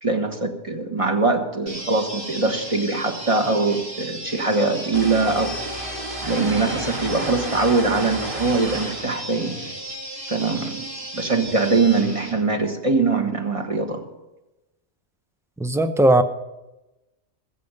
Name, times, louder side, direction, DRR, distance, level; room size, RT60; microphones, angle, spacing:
voice 1, 0.0-5.6 6.2-9.6 10.3-10.8 11.1-14.0, right 3 dB, 30° right, 3 dB, 1.5 m, -22 dB
sound 1, 1.7-12.3, right 1 dB, 75° right, 5.5 m, -35 dB
sound 2, 4.9-9.1, right 1 dB, 45° right, 2.1 m, -32 dB
voice 2, 15.6-16.2, right 1 dB, 5° right, 10 dB, 0.4 m, -17 dB
20.5 x 7.5 x 5.3 m, 0.99 s
omnidirectional pair, 1.2 m